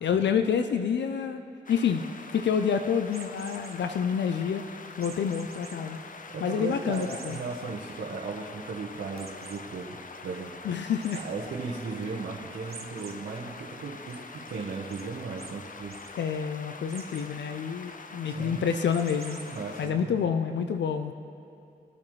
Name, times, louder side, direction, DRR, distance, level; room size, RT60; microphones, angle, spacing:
voice 1, 0.0-1.4 1.7-2.0 2.3-4.6 5.0-6.0 6.4-7.4 10.6-11.2 16.2-19.4 19.8-21.1, left 7 dB, 75° left, 8 dB, 0.6 m, -28 dB
sound 1, 1.7-19.9, left 4 dB, 45° left, 0.8 m, -45 dB
sound 2, 3.1-3.7 5.0-5.7 6.2-6.3 6.9-7.4 7.9-8.0 8.3-8.4 9.2-9.6 11.0-11.2 12.7-13.1 13.6-14.2 14.9-15.0 15.4-15.5 15.8-16.1 16.9-17.3 18.9-19.6, right 5 dB, 55° right, 1.1 m, -46 dB
voice 2, 6.3-10.5 11.1-15.9 18.2-18.7 19.5-20.2, right 4 dB, 80° right, -4 dB, 1.3 m, -36 dB
20.5 x 8.6 x 3.2 m, 2.7 s
cardioid pair, 55°, 19 cm